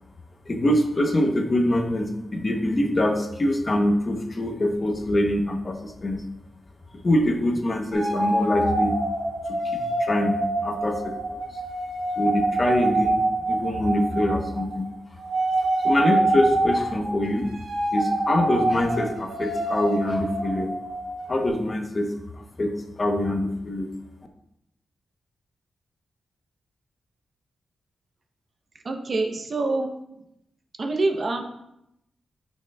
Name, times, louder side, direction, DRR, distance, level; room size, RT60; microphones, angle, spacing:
voice 1, 0.5-6.2 7.0-9.0 9.5-10.4 10.6-11.4 12.2-14.9 15.8-17.5 17.9-20.7 21.3-23.9, left 1 dB, 25° left, 4 dB, 0.7 m, -24 dB
sound 1, 7.9-14.9 15.2-21.5, right 2 dB, 75° right, 2.8 m, -26 dB
voice 2, 28.8-30.2 30.7-31.4, right 2 dB, 35° right, 4 dB, 0.6 m, -26 dB
8.8 x 6.2 x 2.2 m, 0.81 s
wide cardioid pair, 165°, 0 cm